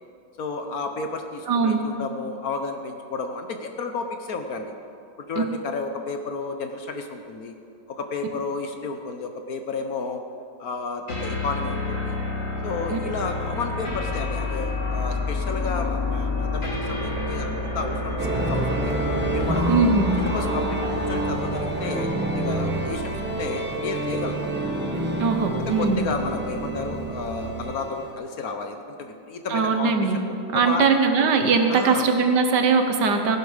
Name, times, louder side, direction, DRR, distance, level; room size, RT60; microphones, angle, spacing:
voice 1, 0.4-4.7 5.3-7.5 7.9-10.2 10.6-12.2 12.6-19.0 19.3-19.8 20.2-22.1 22.3-24.4 25.6-30.9 31.7-32.1, left 4 dB, 60° left, 6 dB, 1.2 m, -32 dB
voice 2, 1.5-1.8 12.9-13.0 19.7-20.2 25.2-26.0 29.5-30.2 30.5-33.4, right 4 dB, 65° right, 5 dB, 1.6 m, -20 dB
sound 1, 11.1-21.4, left 3 dB, 45° left, 2.6 m, -29 dB
sound 2, 16.3-27.7, right 4 dB, 50° right, 1.3 m, -35 dB
sound 3, 18.2-28.1, right 1 dB, 5° right, 1.2 m, -28 dB
15.0 x 11.5 x 5.0 m, 2.7 s
omnidirectional pair, 2.0 m